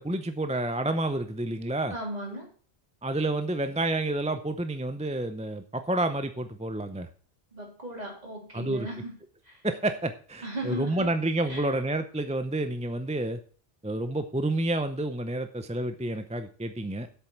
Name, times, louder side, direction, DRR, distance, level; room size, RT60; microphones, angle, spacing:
voice 1, 0.0-1.9 3.0-7.1 8.5-8.9 9.6-13.4 13.8-17.1, right 2 dB, 10° right, 9 dB, 0.5 m, -29 dB
voice 2, 1.9-2.5 7.5-9.1 9.4-9.6 10.4-11.1 11.5-11.8, right 1 dB, 40° right, -1 dB, 3.5 m, -37 dB
8.1 x 7.3 x 5.9 m, 0.42 s
omnidirectional pair, 1.0 m